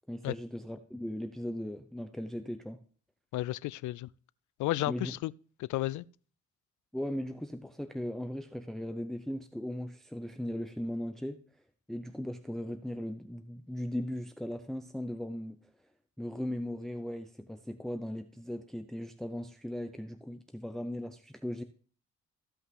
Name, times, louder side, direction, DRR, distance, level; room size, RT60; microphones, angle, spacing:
voice 1, 0.1-2.8 4.9-5.1 6.9-11.4 11.9-15.6 16.2-21.6, left 1 dB, ahead, 0.7 m, -38 dB
voice 2, 3.3-4.1 4.6-5.3 5.6-6.0, left 17 dB, 75° left, 0.4 m, -32 dB
15.5 x 5.6 x 3.7 m
cardioid pair, 90°, 30 cm